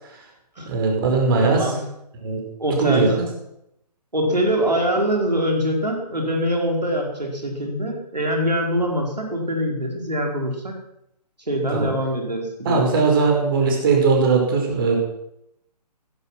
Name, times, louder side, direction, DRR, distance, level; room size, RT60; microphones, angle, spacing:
voice 1, 0.6-1.7 2.2-2.4 2.8-3.2 11.7-11.9 12.6-15.0, right 4 dB, 35° right, 1 dB, 5.1 m, -19 dB
voice 2, 1.4-1.8 2.6-3.1 4.1-10.8 11.5-13.0, equal, 80° right, 1 dB, 5.1 m, -23 dB
16.5 x 12.5 x 6.2 m, 0.79 s
figure-of-eight pair, 140°, 21 cm